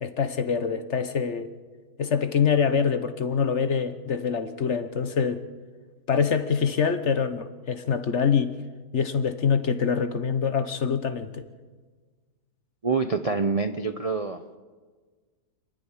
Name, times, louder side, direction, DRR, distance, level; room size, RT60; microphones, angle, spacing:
voice 1, 0.0-1.5 2.0-5.4 6.1-8.5 8.9-11.4, left 6 dB, 50° left, 1.1 m, -25 dB
voice 2, 12.8-14.4, right 4 dB, 35° right, 0.6 m, -26 dB
29.5 x 10.5 x 9.9 m
omnidirectional pair, 1.8 m